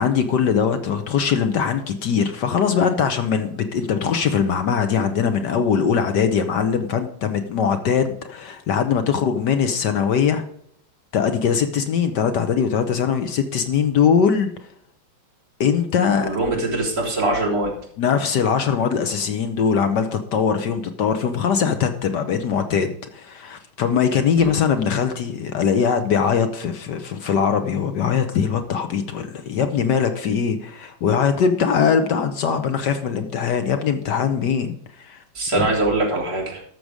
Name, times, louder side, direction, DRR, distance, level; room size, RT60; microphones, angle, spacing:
voice 1, 0.0-10.4 11.1-14.5 15.6-16.4 18.0-35.2 35.5-35.7, left 7 dB, 65° left, 8 dB, 1.4 m, -21 dB
voice 2, 16.2-17.7 24.4-24.6 35.3-36.6, right 2 dB, 50° right, -4 dB, 3.8 m, -22 dB
12.5 x 6.9 x 4.9 m, 0.65 s
omnidirectional pair, 2.1 m